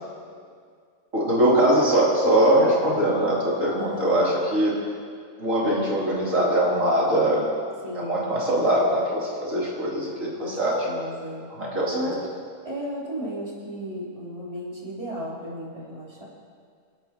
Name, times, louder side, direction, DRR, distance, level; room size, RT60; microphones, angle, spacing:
voice 1, 1.1-4.8 5.4-7.4 7.9-10.9 11.6-12.1, right 1 dB, 85° right, -6 dB, 3.8 m, -22 dB
voice 2, 3.8-4.3 7.8-8.3 10.4-10.6 10.8-11.4 11.9-12.1 12.6-16.2, equal, 25° right, -7 dB, 3.9 m, -34 dB
27.5 x 12.0 x 3.0 m, 2.1 s
omnidirectional pair, 1.3 m